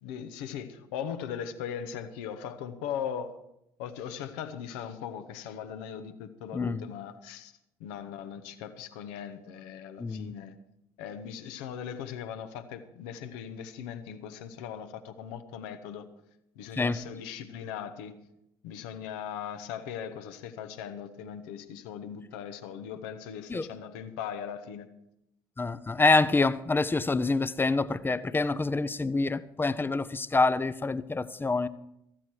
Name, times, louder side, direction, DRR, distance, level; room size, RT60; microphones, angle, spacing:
voice 1, 0.0-3.3 3.8-7.5 7.8-10.5 11.0-16.1 16.5-18.1 18.6-24.9, left 8 dB, 65° left, 1.1 m, -39 dB
voice 2, 6.5-6.8 10.0-10.3 16.8-17.0 23.5-23.7 25.6-31.7, left 3 dB, 15° left, 0.7 m, -26 dB
14.5 x 13.0 x 4.7 m
figure-of-eight pair, 50°, 13 cm